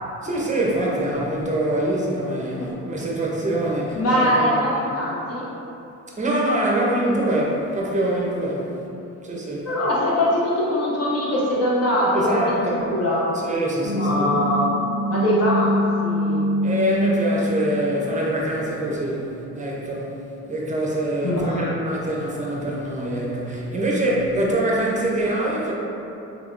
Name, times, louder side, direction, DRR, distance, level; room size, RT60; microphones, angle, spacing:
voice 1, 0.2-4.7 6.2-8.7 9.2-9.7 12.1-12.8 13.3-14.3 16.6-20.2 20.4-25.7, right 1 dB, 25° right, -4 dB, 0.7 m, -24 dB
voice 2, 4.0-5.5 9.7-13.3 13.9-14.7 15.1-15.7 16.0-16.4 21.2-21.6, left 1 dB, 55° left, -6 dB, 1.0 m, -22 dB
sound 1, 13.8-19.0, equal, 40° left, 0.7 m, -25 dB
3.5 x 3.3 x 2.5 m, 2.9 s
cardioid pair, 90°, 30 cm